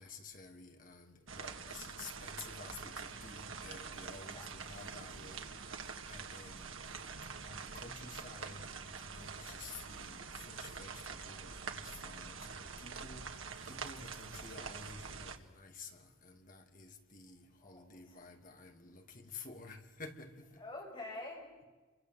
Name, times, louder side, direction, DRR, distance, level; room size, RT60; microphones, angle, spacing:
voice 1, 0.0-7.1 7.4-20.6, left 4 dB, 40° left, 2.6 m, -52 dB
sound 1, 1.3-15.4, right 5 dB, 80° right, 1.8 m, -46 dB
voice 2, 17.6-18.2 20.6-21.7, left 2 dB, 25° left, 6.7 m, -47 dB
29.0 x 24.0 x 8.1 m
head